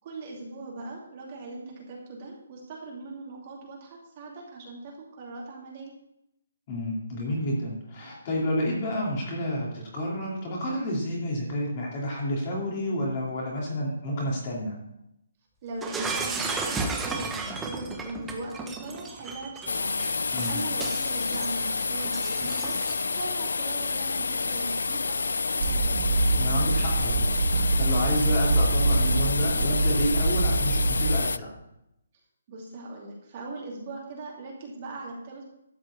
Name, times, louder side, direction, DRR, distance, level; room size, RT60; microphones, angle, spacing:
voice 1, 0.0-5.9 15.6-16.7 17.0-20.0 20.5-22.8 23.1-26.0 32.5-35.5, right 2 dB, 25° right, -3 dB, 2.7 m, -40 dB
voice 2, 6.7-14.8 20.3-20.6 26.4-27.2 27.5-31.5, equal, 20° left, -3 dB, 2.5 m, -30 dB
Shatter, 15.8-23.2, right 3 dB, 5° right, 0.7 m, -34 dB
sound 1, 19.7-31.4, left 4 dB, 90° left, 0.4 m, -29 dB
sound 2, 25.6-31.2, right 2 dB, 50° right, 1.6 m, -25 dB
13.0 x 5.0 x 8.2 m, 0.81 s
hypercardioid pair, 180°, 0 cm